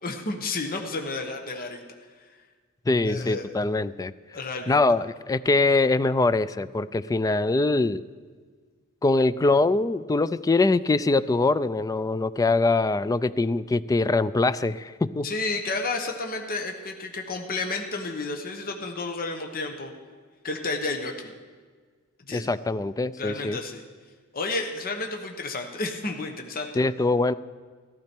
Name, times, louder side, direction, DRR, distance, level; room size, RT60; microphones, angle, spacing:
voice 1, 0.0-1.8 3.1-3.5 4.3-4.8 15.2-19.9 20.4-21.3 22.3-22.5 23.2-23.8 24.3-26.8, left 3 dB, 45° left, 4 dB, 1.1 m, -31 dB
voice 2, 2.9-4.1 4.7-8.0 9.0-15.3 22.3-23.6 26.8-27.3, left 3 dB, 15° left, 15 dB, 0.3 m, -23 dB
15.0 x 13.5 x 4.5 m, 1.5 s
head